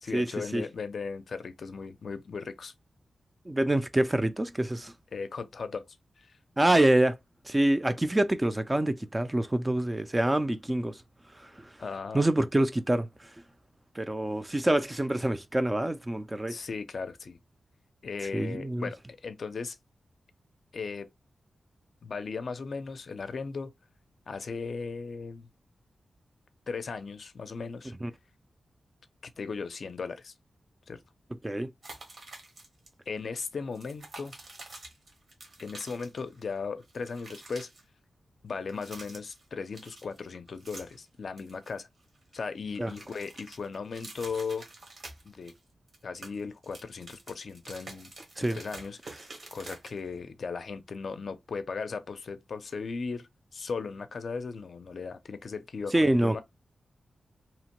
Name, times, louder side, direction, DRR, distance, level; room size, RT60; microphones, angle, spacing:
voice 1, 0.0-2.7 5.1-5.8 6.2-6.4 11.8-12.2 16.5-17.4 18.0-19.8 20.7-21.1 22.0-23.7 24.3-25.5 26.7-27.9 29.2-30.3 30.9-31.0 33.1-34.3 35.6-37.7 38.4-41.9 42.3-44.7 45.2-45.6 46.0-48.1 48.5-49.0 49.5-56.4, left 5 dB, 65° left, 0.4 m, -37 dB
voice 2, 3.5-4.9 6.6-7.2 7.5-11.0 11.4-11.7 12.1-13.3 14.0-16.6 18.3-18.9 28.0-28.1 31.4-31.7 42.8-42.9 48.4-48.6 55.9-56.4, right 1 dB, 15° right, 0.3 m, -26 dB
sound 1, 31.8-32.9 33.1-33.3 33.7-36.5 36.8-37.8 38.6-39.5 39.7-41.1 41.4-42.4 42.7-45.6 45.9-50.2, right 2 dB, 60° right, 1.0 m, -48 dB
2.8 x 2.1 x 2.8 m
wide cardioid pair, 105°, 0 cm